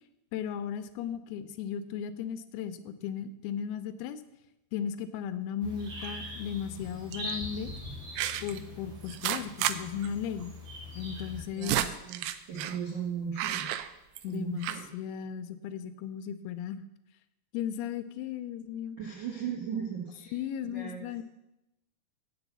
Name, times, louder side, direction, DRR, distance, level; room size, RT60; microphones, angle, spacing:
voice 1, 0.3-4.2 4.7-7.7 8.4-10.5 11.0-11.8 14.2-16.8 17.5-19.0 20.3-21.2, left 8 dB, 80° left, 10 dB, 2.4 m, -36 dB
sound 1, 5.6-11.4, left 1 dB, 35° right, 3.1 m, -42 dB
sound 2, 6.0-6.4 7.1-7.3 8.2-8.6 9.1-9.8 10.0-10.1 10.4-10.5 11.2-12.8 13.4-14.4 14.6-14.8, right 12 dB, 85° right, 2.7 m, -32 dB
voice 2, 11.5-13.8 14.3-14.8 19.0-20.4 20.7-21.2, right 7 dB, 70° right, -3 dB, 1.1 m, -37 dB
8.0 x 6.9 x 8.0 m, 0.91 s
omnidirectional pair, 4.7 m